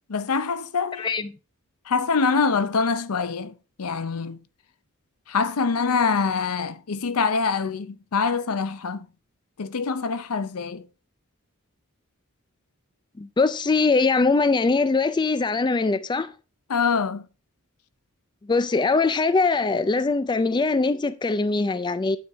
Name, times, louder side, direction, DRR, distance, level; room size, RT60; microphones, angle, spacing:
voice 1, 0.1-1.1 1.9-4.4 5.3-9.1 9.6-10.8 16.7-17.2, left 5 dB, 80° left, 0.6 m, -25 dB
voice 2, 1.0-1.3 13.2-16.3 18.5-22.2, left 3 dB, 20° left, 0.4 m, -22 dB
9.4 x 4.5 x 4.6 m
head